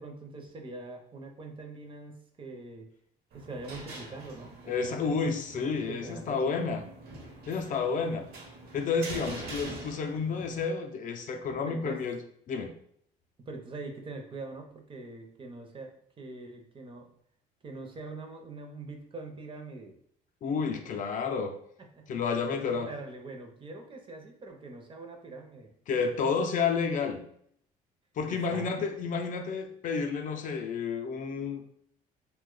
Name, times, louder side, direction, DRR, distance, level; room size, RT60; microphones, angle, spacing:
voice 1, 0.0-2.9 3.3-5.2 5.5-6.6 11.6-12.0 13.5-17.1 17.6-19.9 21.8-22.1 22.3-25.7 28.2-28.7, right 3 dB, 30° right, 4 dB, 0.6 m, -43 dB
sound 1, 3.3-10.6, right 2 dB, 65° right, 0.9 m, -44 dB
voice 2, 4.7-6.8 7.5-8.3 8.7-12.2 12.5-12.7 20.4-21.5 22.1-22.9 25.9-27.2 28.2-31.7, left 5 dB, 50° left, 5 dB, 0.4 m, -30 dB
2.8 x 2.2 x 3.7 m, 0.66 s
cardioid pair, 110°, 17 cm